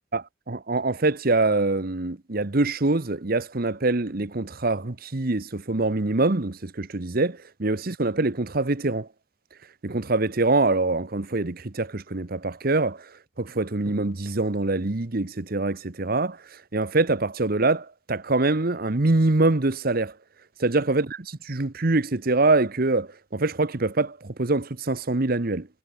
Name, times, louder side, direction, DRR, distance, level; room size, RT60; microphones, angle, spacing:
voice 1, 0.1-9.1 9.8-13.1 13.4-20.1 20.6-21.2 21.4-25.7, right 2 dB, 50° right, 1.1 m, -24 dB
head